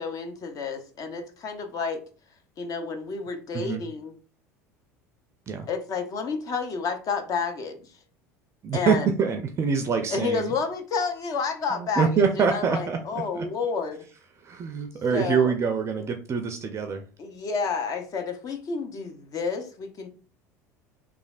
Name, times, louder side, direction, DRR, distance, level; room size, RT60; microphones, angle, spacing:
voice 1, 0.0-2.0 2.6-4.1 5.7-7.8 8.7-9.1 10.1-14.0 15.1-15.5 17.2-20.1, left 5 dB, 40° left, 5 dB, 0.7 m, -30 dB
voice 2, 8.6-10.5 11.7-13.5 14.4-17.0, right 6 dB, 35° right, 5 dB, 0.4 m, -25 dB
3.2 x 2.4 x 2.3 m, 0.38 s
hypercardioid pair, 70°, 9 cm